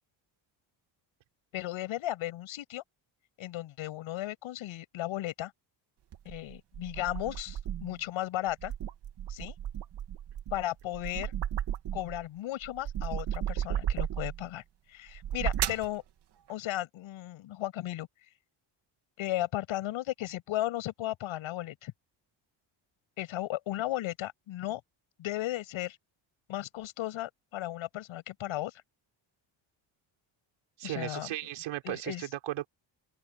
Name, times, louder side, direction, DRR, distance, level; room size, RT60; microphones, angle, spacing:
voice 1, 1.5-2.8 3.4-5.5 6.3-8.7 9.3-9.6 10.5-11.3 11.9-14.6 14.9-16.0 16.5-18.1 19.2-21.9 23.2-24.8 25.2-26.0 26.5-28.7 30.8-31.3 31.8-32.3, left 15 dB, 80° left, 7.2 m, -35 dB
sound 1, 6.1-8.0 8.5-12.2 12.6-14.5 15.1-15.9, right 10 dB, 55° right, 2.6 m, -34 dB
voice 2, 30.8-32.7, right 14 dB, 90° right, 5.4 m, -36 dB
open air
cardioid pair, 155°, 47 cm